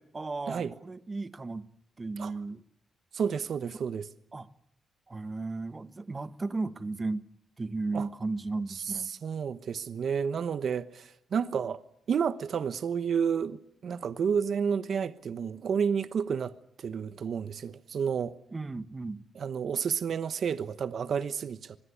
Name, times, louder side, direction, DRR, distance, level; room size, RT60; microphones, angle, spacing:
voice 1, 0.0-1.7 2.0-2.6 3.7-3.8 4.3-4.5 5.1-7.3 7.6-9.1 18.5-19.2, right 3 dB, 25° right, 1.2 m, -35 dB
voice 2, 3.1-4.1 7.9-8.1 9.2-11.8 12.1-18.4 19.4-21.8, right 7 dB, 60° right, 1.1 m, -30 dB
25.0 x 21.5 x 8.5 m
cardioid pair, 100°, 0 cm